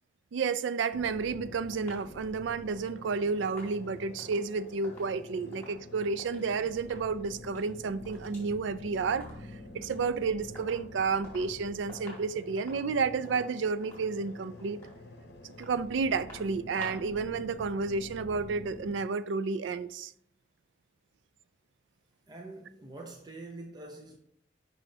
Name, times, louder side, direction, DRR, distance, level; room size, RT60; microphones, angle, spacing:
voice 1, 0.3-9.3 9.7-14.8 15.4-20.1, right 4 dB, 80° right, 0.4 m, -31 dB
sound 1, 0.9-18.9, left 2 dB, 55° left, 0.8 m, -48 dB
sound 2, 1.0-6.5 6.8-7.1 7.4-8.5 8.8-9.6 9.9-10.2 10.6-11.6 11.9-17.2 17.5-17.6, left 1 dB, 10° left, 2.5 m, -52 dB
voice 2, 22.3-24.2, right 2 dB, 20° right, 0.5 m, -45 dB
7.1 x 5.5 x 2.7 m
head